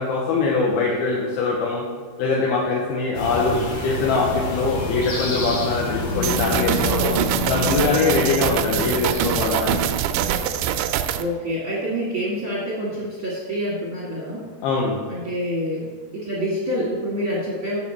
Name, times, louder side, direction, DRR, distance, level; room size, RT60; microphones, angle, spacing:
voice 1, 0.0-1.8 2.2-7.2 7.5-9.8 14.6-15.0, left 4 dB, 75° left, -3 dB, 2.5 m, -22 dB
sound 1, 3.1-9.5, left 3 dB, 55° left, 2.1 m, -28 dB
sound 2, 6.2-11.2, right 9 dB, 85° right, 2.3 m, -23 dB
voice 2, 11.1-14.4 15.1-17.8, equal, 60° right, -6 dB, 1.3 m, -27 dB
8.3 x 7.2 x 4.3 m, 1.6 s
omnidirectional pair, 5.1 m